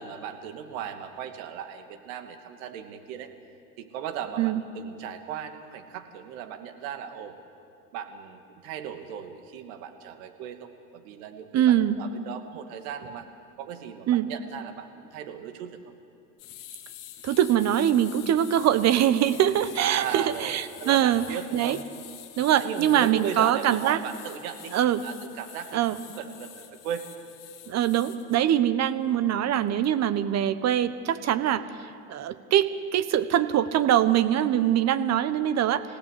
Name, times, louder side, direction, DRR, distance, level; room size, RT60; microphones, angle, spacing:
voice 1, 0.0-3.3 3.8-7.4 7.9-13.3 13.6-15.8 19.9-21.8 22.6-24.8 25.0-27.1, right 8 dB, 60° right, 7 dB, 2.6 m, -37 dB
voice 2, 11.5-12.0 14.1-14.3 17.2-21.2 21.5-21.8 22.4-24.0 24.7-25.0 25.7-26.0 27.7-35.8, right 11 dB, 35° right, 13 dB, 1.3 m, -23 dB
sound 1, 16.4-28.4, left 12 dB, 40° left, 2.5 m, -46 dB
28.5 x 17.0 x 8.5 m, 2.5 s
hypercardioid pair, 105°, 45 cm